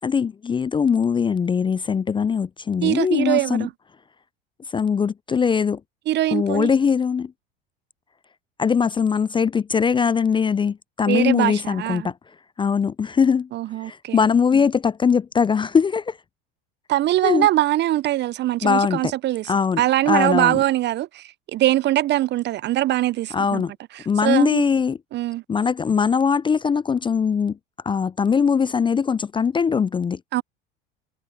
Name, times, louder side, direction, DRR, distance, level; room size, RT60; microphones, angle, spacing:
voice 1, 0.0-3.7 4.7-5.8 6.3-7.3 8.6-12.1 12.6-13.5 13.8-16.2 17.2-17.5 18.6-19.1 19.5-19.8 20.1-20.6 23.3-23.7 24.1-25.0 25.5-27.6 27.9-30.2, left 6 dB, 15° left, 0.5 m, -21 dB
voice 2, 2.8-3.7 6.1-6.7 11.1-12.1 13.5-14.2 16.9-23.6 23.9-24.6 25.1-25.4 30.3-30.4, right 14 dB, 35° right, 0.5 m, -22 dB
hypercardioid pair, 75°, 29 cm